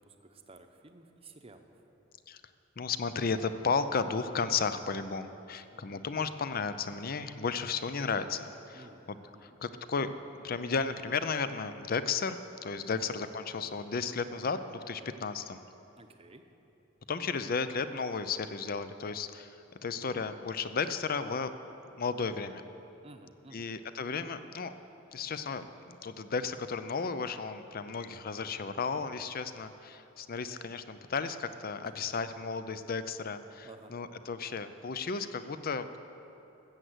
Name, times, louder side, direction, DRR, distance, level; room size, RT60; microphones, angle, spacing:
voice 1, 0.0-1.8 5.7-6.1 8.7-9.0 9.3-9.6 12.9-13.1 16.0-16.4 23.0-23.7 33.6-34.0, right 2 dB, 30° right, 6 dB, 0.8 m, -54 dB
voice 2, 2.8-9.2 9.4-10.1 10.4-15.6 17.1-21.5 22.0-22.6 23.5-24.7 25.1-36.0, left 5 dB, 50° left, 11 dB, 0.6 m, -34 dB
14.0 x 7.9 x 8.0 m, 2.9 s
head